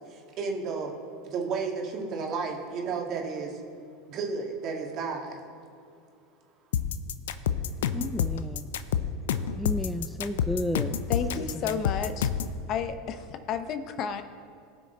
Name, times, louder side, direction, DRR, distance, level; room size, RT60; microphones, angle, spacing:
voice 1, 0.1-0.9 1.2-3.6 4.1-5.4, right 4 dB, 50° right, 0 dB, 2.2 m, -32 dB
sound 1, 6.7-12.6, left 8 dB, 80° left, 0.5 m, -28 dB
voice 2, 7.9-8.7 9.5-11.0 11.5-11.8, left 1 dB, 5° left, 8 dB, 0.4 m, -32 dB
voice 3, 11.1-12.3 12.7-14.2, left 7 dB, 50° left, 9 dB, 0.8 m, -32 dB
18.5 x 6.2 x 4.0 m, 2.4 s
hypercardioid pair, 95°, 0 cm